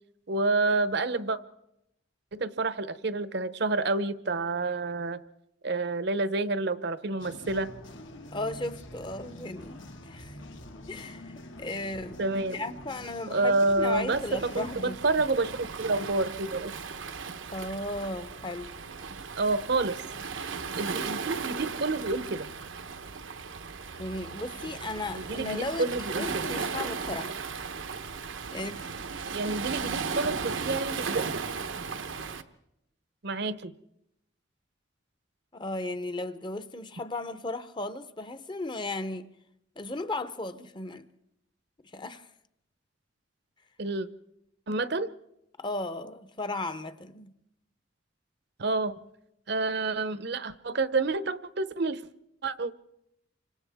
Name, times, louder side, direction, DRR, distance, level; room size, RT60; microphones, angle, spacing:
voice 1, 0.3-1.4 2.3-5.2 5.6-7.7 12.2-12.6 13.3-16.7 19.4-20.0 20.8-22.5 25.1-26.4 29.3-31.2 33.2-33.7 43.8-44.1 44.7-45.1 48.6-48.9 49.5-52.0 52.4-52.7, right 3 dB, 60° right, 0.8 m, -28 dB
sound 1, 7.2-14.8, left 1 dB, 80° left, 2.0 m, -45 dB
voice 2, 8.3-10.4 10.9-12.2 12.5-15.0 17.5-18.7 24.0-27.3 28.5-29.0 35.5-39.3 39.8-41.1 41.9-42.3 45.6-47.3, left 2 dB, 25° left, 0.7 m, -36 dB
Waves surf, 14.1-32.4, right 5 dB, 85° right, 1.0 m, -36 dB
28.5 x 25.5 x 3.5 m
head